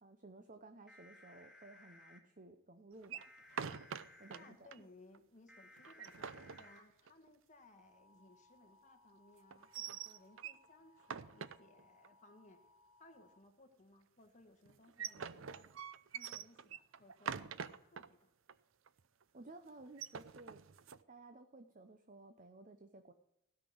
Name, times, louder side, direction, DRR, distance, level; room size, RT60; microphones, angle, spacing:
voice 1, 0.0-3.2 4.2-4.6 19.3-20.6 21.1-23.1, right 2 dB, 40° right, 8 dB, 0.8 m, -56 dB
sound 1, 0.9-2.2 3.2-4.5 5.5-6.8 7.8-13.4, left 2 dB, 5° right, 1.6 m, -63 dB
sound 2, 3.0-4.4 4.7-4.8 5.1-5.2 5.8-7.3 9.5-10.7 11.0-12.1 14.7-18.1 18.5-18.6 18.9-19.2 19.8-21.0, right 7 dB, 70° right, 0.6 m, -45 dB
voice 2, 4.3-12.6 13.0-15.7 16.1-18.3, left 2 dB, 35° left, 5 dB, 1.6 m, -63 dB
16.0 x 6.0 x 7.9 m, 0.83 s
head